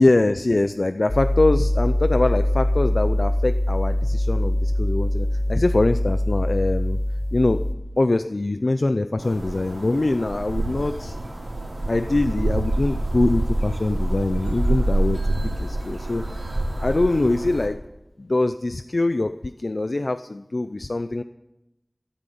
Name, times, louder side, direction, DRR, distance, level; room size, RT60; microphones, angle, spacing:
voice 1, 0.0-7.0 7.3-7.6 8.0-11.2 11.9-16.3 16.8-17.8 18.2-21.2, left 2 dB, 75° left, 10 dB, 0.5 m, -23 dB
sound 1, 1.1-7.7, left 1 dB, 60° left, 2.1 m, -23 dB
sound 2, 9.2-17.7, right 1 dB, 70° right, 3.6 m, -26 dB
17.0 x 9.0 x 8.5 m, 0.92 s
wide cardioid pair, 40°, 0 cm